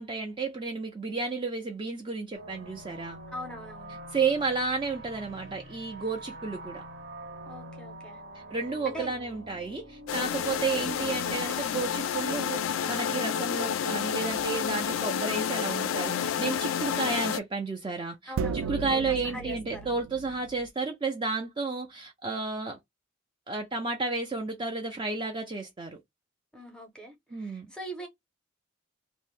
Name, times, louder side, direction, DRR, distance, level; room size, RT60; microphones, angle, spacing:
voice 1, 0.0-3.2 4.1-6.8 8.3-22.8 23.5-26.0 27.3-27.7, right 4 dB, 25° right, 0.4 m, -32 dB
sound 1, 2.3-13.0, right 1 dB, 65° right, 1.0 m, -46 dB
voice 2, 3.3-4.0 7.5-8.2 8.9-9.1 10.4-10.7 18.3-19.9 26.5-28.1, right 1 dB, 5° left, 0.7 m, -42 dB
sound 2, 10.1-17.4, left 8 dB, 85° left, 0.3 m, -30 dB
sound 3, 14.3-14.7 18.4-20.7, right 5 dB, 85° right, 0.4 m, -35 dB
2.6 x 2.0 x 3.2 m
head